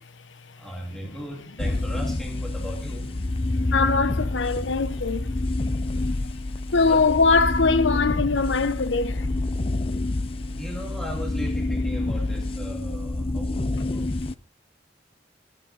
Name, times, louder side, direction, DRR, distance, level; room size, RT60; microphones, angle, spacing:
voice 1, 0.6-3.1 5.4-5.5 6.2-6.3 6.7-7.2 10.6-14.2, equal, 5° left, 2.4 m, -37 dB
sound 1, 1.6-14.3, left 2 dB, 30° left, 0.6 m, -28 dB
voice 2, 3.5-6.4 6.7-9.3 13.8-13.9, left 4 dB, 90° left, 1.0 m, -23 dB
24.0 x 9.8 x 2.8 m
head